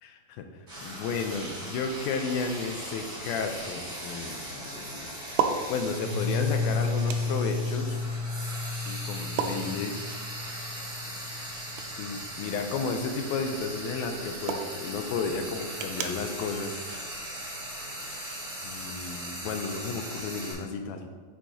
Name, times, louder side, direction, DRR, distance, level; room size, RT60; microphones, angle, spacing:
voice 1, 0.0-0.5 0.8-5.1 5.7-8.0 8.9-10.0 12.0-16.8 18.6-21.1, left 4 dB, 80° left, 5 dB, 2.3 m, -33 dB
Frying (food), 0.7-20.5, right 1 dB, 70° right, 0.4 m, -39 dB
sound 1, 2.7-17.9, right 7 dB, 90° right, 2.6 m, -39 dB
Piano, 6.0-11.7, left 4 dB, 65° left, 1.3 m, -32 dB
9.0 x 6.5 x 2.8 m, 1.4 s
omnidirectional pair, 4.5 m